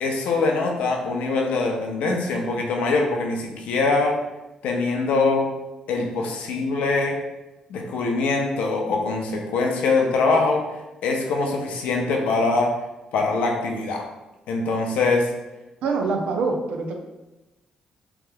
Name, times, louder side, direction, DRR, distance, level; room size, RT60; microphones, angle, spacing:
voice 1, 0.0-4.2 4.6-5.5 5.9-7.2 7.7-10.6 11.0-12.7 13.1-14.1 14.5-15.3, left 3 dB, 85° left, 1 dB, 0.5 m, -23 dB
voice 2, 15.8-16.9, right 4 dB, 80° right, 2 dB, 0.5 m, -24 dB
3.4 x 2.9 x 2.2 m, 1.0 s
cardioid pair, 115°, 2 cm